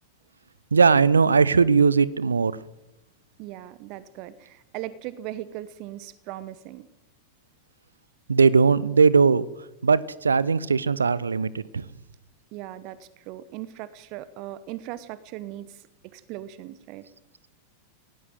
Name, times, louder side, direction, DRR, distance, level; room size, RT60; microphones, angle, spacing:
voice 1, 0.7-2.5 8.3-9.4 9.8-11.8, right 5 dB, 75° right, 21 dB, 0.8 m, -19 dB
voice 2, 3.4-6.9 12.5-17.1, right 14 dB, 40° right, 17 dB, 1.0 m, -39 dB
22.0 x 18.0 x 7.8 m, 0.92 s
figure-of-eight pair, 90°, 0 cm